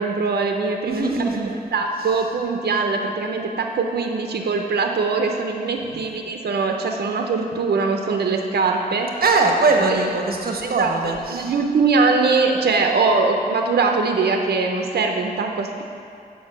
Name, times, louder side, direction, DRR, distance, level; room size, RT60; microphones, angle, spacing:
voice 1, 0.0-9.2 9.8-10.0 10.6-15.8, right 4 dB, 85° right, 3 dB, 0.7 m, -22 dB
voice 2, 0.9-1.5 5.8-6.0 9.2-11.5, right 3 dB, 65° right, 1 dB, 1.1 m, -21 dB
7.1 x 5.8 x 7.3 m, 2.4 s
wide cardioid pair, 75°, 16 cm